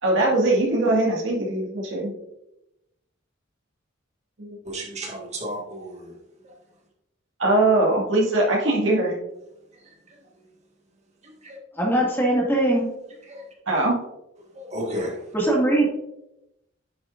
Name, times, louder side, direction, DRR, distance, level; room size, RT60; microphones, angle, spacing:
voice 1, 0.0-2.1 4.4-4.6 7.4-9.1 13.7-14.0, right 2 dB, 70° right, -2 dB, 2.0 m, -21 dB
voice 2, 4.6-6.1 11.2-11.6 13.3-13.4 14.5-15.2, equal, 35° right, -1 dB, 1.8 m, -33 dB
voice 3, 11.8-12.9 15.3-15.8, right 1 dB, 10° left, -4 dB, 2.2 m, -21 dB
10.5 x 6.2 x 2.6 m, 0.88 s
head